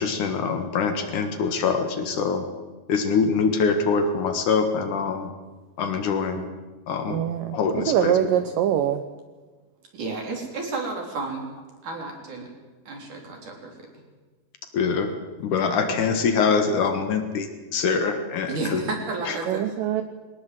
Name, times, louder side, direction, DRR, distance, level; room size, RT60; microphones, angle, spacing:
voice 1, 0.0-2.4 2.9-5.3 5.8-6.5 6.9-7.2 7.5-8.1 14.7-15.1 15.4-18.8, left 5 dB, 60° left, 7 dB, 2.8 m, -24 dB
voice 2, 7.1-9.0 19.5-20.0, right 11 dB, 70° right, 8 dB, 2.3 m, -23 dB
voice 3, 9.9-11.5 11.8-12.5 12.9-13.7 18.5-19.7, right 3 dB, 55° right, 2 dB, 5.0 m, -31 dB
21.5 x 19.0 x 7.8 m, 1.3 s
omnidirectional pair, 4.5 m